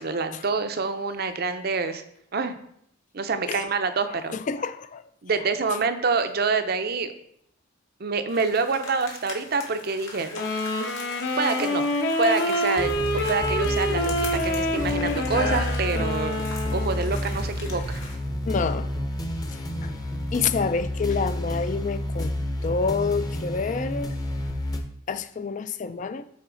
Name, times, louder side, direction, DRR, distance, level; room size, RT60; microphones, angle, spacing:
voice 1, 0.0-2.0 2.3-2.5 3.1-4.3 5.2-7.1 8.0-10.7 11.4-11.9 12.2-12.9 13.3-16.5 16.7-18.0, right 4 dB, 50° right, 0.6 m, -26 dB
voice 2, 4.1-5.1 5.7-5.8 18.4-18.9 19.5-19.9 20.3-24.2 25.1-26.2, left 5 dB, 40° left, 0.4 m, -28 dB
sound 1, 8.3-18.2, left 2 dB, 85° left, 1.7 m, -38 dB
Wind instrument woodwind instrument, 10.3-17.2, left 1 dB, 55° left, 1.0 m, -27 dB
sound 2, 12.8-24.8, left 1 dB, 20° left, 0.7 m, -30 dB
9.4 x 4.1 x 3.8 m
head